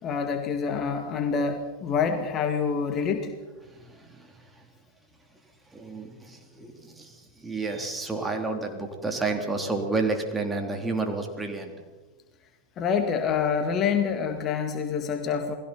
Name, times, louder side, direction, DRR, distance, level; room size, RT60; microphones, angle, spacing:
voice 1, 0.0-3.3 12.8-15.5, left 6 dB, 30° left, 6 dB, 1.9 m, -26 dB
voice 2, 3.6-4.7 5.7-11.8, right 3 dB, 10° right, 3 dB, 3.5 m, -31 dB
29.0 x 20.5 x 4.5 m, 1.2 s
figure-of-eight pair, 90°, 0 cm